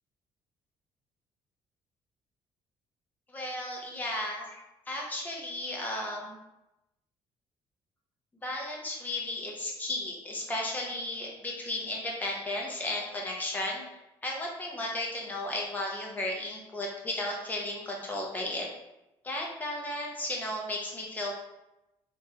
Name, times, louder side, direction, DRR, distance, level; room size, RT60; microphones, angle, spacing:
voice 1, 3.3-4.6 4.9-6.4 8.4-13.8 14.2-18.7 19.2-21.3, left 1 dB, 15° left, -1 dB, 0.7 m, -34 dB
3.4 x 3.1 x 2.8 m, 0.92 s
cardioid pair, 165°, 11 cm